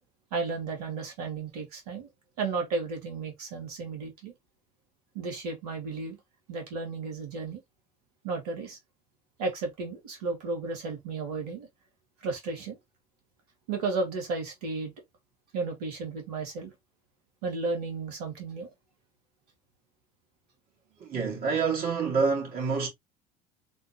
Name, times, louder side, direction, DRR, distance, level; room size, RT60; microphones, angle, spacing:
voice 1, 0.3-2.1 2.4-4.3 5.1-6.2 6.5-7.6 8.2-8.8 9.4-11.7 12.2-12.8 13.7-14.9 15.5-16.7 17.4-18.7, right 4 dB, 75° right, 2.2 m, -33 dB
voice 2, 21.0-22.9, right 5 dB, 45° right, 3.0 m, -27 dB
4.3 x 4.0 x 2.9 m
hypercardioid pair, 70°, 20 cm